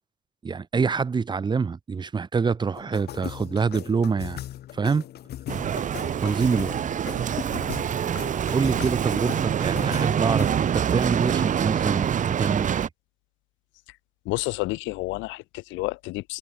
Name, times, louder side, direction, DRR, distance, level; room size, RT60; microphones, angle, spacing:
voice 1, 0.4-4.4 4.7-5.0 6.2-6.8 8.5-12.9, right 5 dB, 25° right, 1.3 m, -26 dB
sound 1, 2.7-10.7, left 12 dB, 60° left, 3.2 m, -39 dB
Bicycle, 5.5-12.9, right 9 dB, 40° right, 1.9 m, -26 dB
voice 2, 14.2-16.4, left 21 dB, 85° left, 1.1 m, -30 dB
cardioid pair, 125°, 19 cm